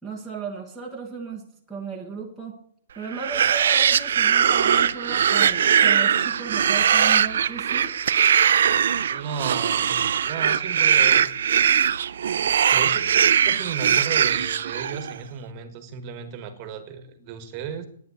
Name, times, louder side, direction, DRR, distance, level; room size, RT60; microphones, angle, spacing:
voice 1, 0.0-2.6 3.0-8.0, right 5 dB, ahead, -5 dB, 1.1 m, -35 dB
sound 1, 3.1-15.1, right 8 dB, 65° right, 0.5 m, -20 dB
voice 2, 9.1-11.3 12.4-13.1 13.4-17.9, right 7 dB, 25° right, 9 dB, 1.5 m, -34 dB
11.0 x 9.2 x 8.4 m, 0.64 s
hypercardioid pair, 175°, 0 cm